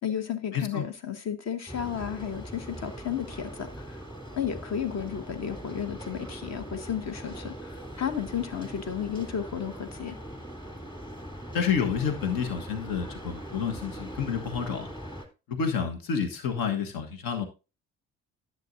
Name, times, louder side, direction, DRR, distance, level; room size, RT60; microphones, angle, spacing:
voice 1, 0.0-4.0 4.3-10.1, left 9 dB, 45° left, 1.4 m, -33 dB
voice 2, 0.5-0.8 11.5-14.9 15.5-17.4, left 6 dB, 65° left, 1.5 m, -29 dB
sound 1, 1.7-15.3, right 1 dB, 15° left, 3.1 m, -41 dB
10.5 x 7.6 x 2.7 m
hypercardioid pair, 50°, 37 cm